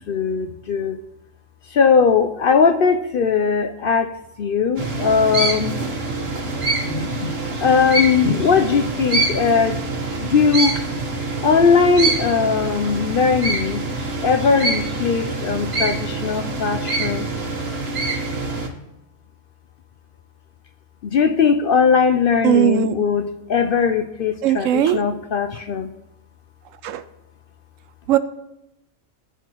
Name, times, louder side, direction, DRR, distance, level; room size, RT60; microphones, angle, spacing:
voice 1, 0.1-1.0 1.7-4.1 4.4-5.8 6.8-7.3 7.6-9.8 10.2-10.8 11.4-13.8 14.2-17.3 21.0-25.9, left 5 dB, 60° left, 8 dB, 0.6 m, -19 dB
sound 1, 4.8-18.7, right 2 dB, 50° right, 1.4 m, -25 dB
voice 2, 22.4-23.0 24.4-25.0 26.8-27.0 28.1-28.2, right 11 dB, 80° right, 13 dB, 1.0 m, -18 dB
17.5 x 5.8 x 3.0 m, 0.88 s
omnidirectional pair, 1.3 m